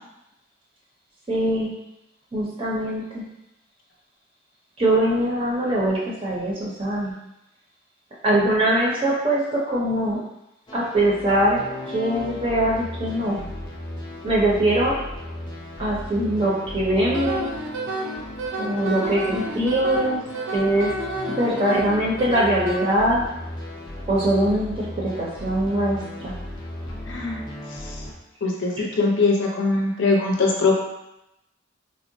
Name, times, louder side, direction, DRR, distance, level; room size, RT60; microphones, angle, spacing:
voice 1, 1.3-1.7 2.3-3.2 4.8-7.1 8.2-10.2 10.7-13.4 14.2-14.9 15.8-17.5 18.6-20.2 20.5-20.9 21.3-23.3 24.1-26.4 28.8-28.9, right 1 dB, 30° right, -5 dB, 0.5 m, -22 dB
sound 1, 10.7-28.1, left 1 dB, 25° left, 0.4 m, -36 dB
Wind instrument woodwind instrument, 17.1-22.8, right 2 dB, 85° right, 0.5 m, -30 dB
voice 2, 27.1-28.0 28.4-30.7, left 3 dB, 70° left, -1 dB, 0.6 m, -22 dB
3.6 x 2.0 x 2.6 m, 0.87 s
head